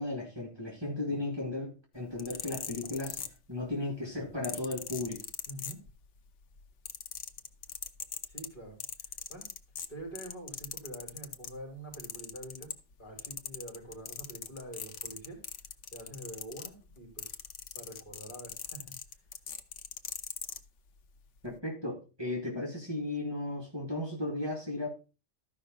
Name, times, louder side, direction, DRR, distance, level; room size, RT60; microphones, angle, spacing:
voice 1, 0.0-5.2 21.4-24.9, left 2 dB, 20° right, -1 dB, 2.3 m, -35 dB
sound 1, 2.0-3.7 4.4-6.2 6.5-11.6 11.9-12.9 13.2-20.6 21.4-21.5, left 8 dB, 85° left, 1.1 m, -41 dB
voice 2, 5.5-5.8 8.3-8.8 9.0-9.5 9.9-12.7 13.0-15.4 15.9-17.4 17.7-18.9, right 1 dB, 45° left, 0 dB, 4.3 m, -46 dB
13.5 x 5.6 x 3.8 m, 0.30 s
omnidirectional pair, 1.2 m